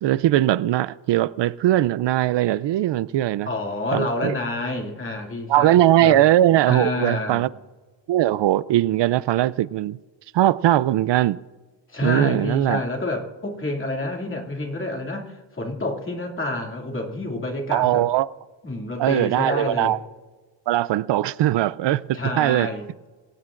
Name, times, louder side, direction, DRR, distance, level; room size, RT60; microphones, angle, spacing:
voice 1, 0.0-3.5 3.9-4.4 5.5-7.5 8.1-10.0 10.3-11.4 12.0-12.8 17.7-18.3 19.0-20.0 20.7-22.7, right 14 dB, 75° right, 0.5 m, -20 dB
voice 2, 3.5-6.2 6.7-7.5 11.9-18.0 18.6-19.9 22.1-22.9, left 2 dB, 25° left, 2.5 m, -28 dB
26.5 x 17.0 x 2.5 m
wide cardioid pair, 130°, 44 cm